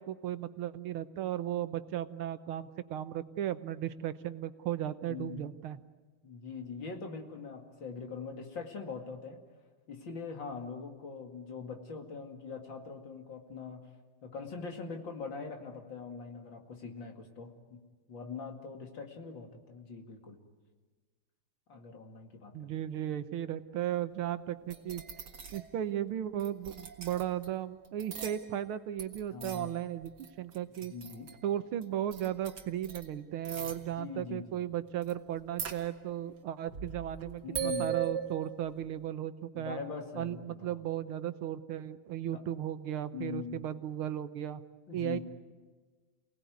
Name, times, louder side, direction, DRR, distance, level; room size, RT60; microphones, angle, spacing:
voice 1, 0.0-5.8 22.5-25.0 25.5-30.9 31.4-39.8 40.2-44.6 44.9-45.2, right 11 dB, 90° right, 11 dB, 1.8 m, -36 dB
voice 2, 5.1-5.4 6.2-9.4 9.9-13.9 14.2-17.8 18.1-20.4 21.7-22.7 29.3-29.7 30.9-31.3 33.9-34.6 37.4-38.0 39.5-40.8 42.3-42.4 43.1-43.6 44.9-45.2, left 5 dB, 65° left, 3 dB, 3.0 m, -42 dB
sound 1, 24.7-25.7 26.4-27.5 27.8-28.7 29.0-31.5 31.8-31.9 32.1-33.1 33.4-33.8 35.0-35.1 35.4-36.3 36.7-38.8, right 8 dB, 55° right, 2.2 m, -40 dB
28.5 x 18.5 x 9.4 m, 1.4 s
omnidirectional pair, 2.3 m